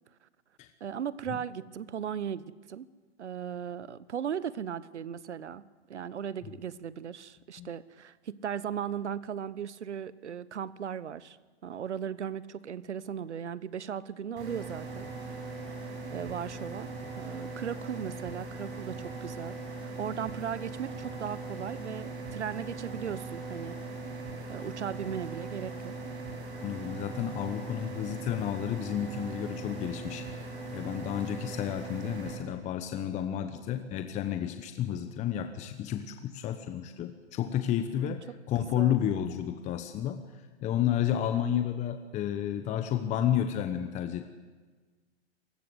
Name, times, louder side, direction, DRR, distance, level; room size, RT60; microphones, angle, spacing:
voice 1, 0.8-2.9 3.2-11.4 11.6-15.1 16.1-23.8 24.5-26.0 38.0-39.0, right 8 dB, 90° right, 18 dB, 1.2 m, -37 dB
sound 1, 14.4-32.3, right 3 dB, 30° right, 7.8 m, -40 dB
voice 2, 26.6-40.2 40.6-44.2, left 10 dB, 20° left, 8 dB, 1.1 m, -31 dB
26.5 x 20.0 x 8.0 m, 1.4 s
hypercardioid pair, 140°, 34 cm